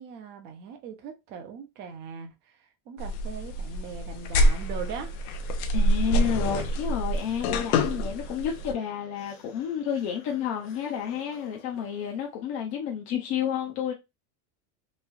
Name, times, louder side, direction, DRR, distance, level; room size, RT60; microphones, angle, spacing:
voice 1, 0.0-5.1, right 6 dB, 25° right, 0.4 m, -40 dB
sound 1, 3.0-8.7, equal, 90° left, 0.7 m, -26 dB
sound 2, 4.1-12.6, left 5 dB, 50° left, 0.9 m, -52 dB
voice 2, 5.7-13.9, left 8 dB, 35° left, 0.4 m, -30 dB
3.1 x 2.3 x 2.4 m
cardioid pair, 170°, 43 cm